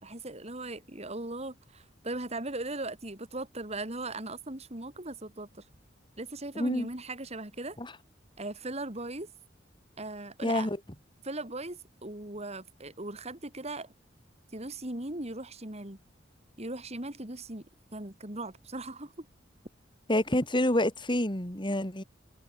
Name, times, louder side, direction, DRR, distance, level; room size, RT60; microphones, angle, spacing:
voice 1, 0.0-5.6 6.2-7.8 8.4-9.3 10.0-10.7 11.2-13.9 14.5-16.0 16.6-17.7 17.9-19.3, right 2 dB, 35° right, 3.2 m, -38 dB
voice 2, 6.6-6.9 7.8-7.9 10.4-10.8 20.1-22.0, left 1 dB, 25° left, 3.4 m, -27 dB
head